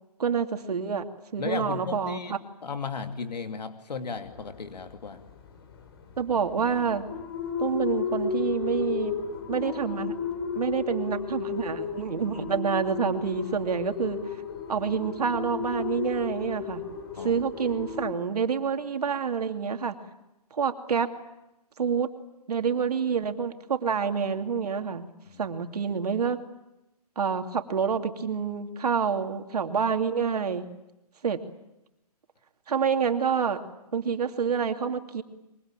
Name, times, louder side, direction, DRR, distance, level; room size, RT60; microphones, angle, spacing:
voice 1, 0.2-1.1 1.3-2.4 6.2-7.1 7.6-9.1 9.5-10.1 10.6-14.2 14.7-16.8 17.2-20.0 20.5-21.1 21.8-22.1 22.5-25.1 25.4-26.4 27.2-30.7 31.2-31.4 32.7-33.6 33.9-35.2, right 6 dB, 70° right, 6 dB, 2.7 m, -27 dB
voice 2, 1.4-2.3 2.6-5.3 17.2-17.4 25.3-25.4, left 5 dB, 85° left, 7 dB, 2.7 m, -35 dB
sound 1, 4.2-18.1, left 6 dB, 35° left, 3.9 m, -34 dB
24.0 x 23.5 x 9.1 m, 0.93 s
hypercardioid pair, 160°, 20 cm